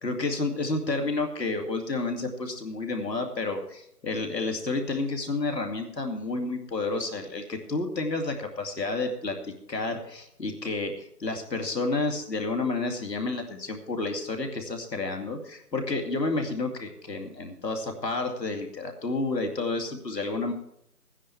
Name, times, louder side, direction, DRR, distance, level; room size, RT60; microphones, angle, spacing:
voice 1, 0.0-20.5, left 3 dB, 85° left, 3 dB, 2.7 m, -30 dB
14.0 x 10.0 x 4.7 m, 0.75 s
figure-of-eight pair, 170°, 48 cm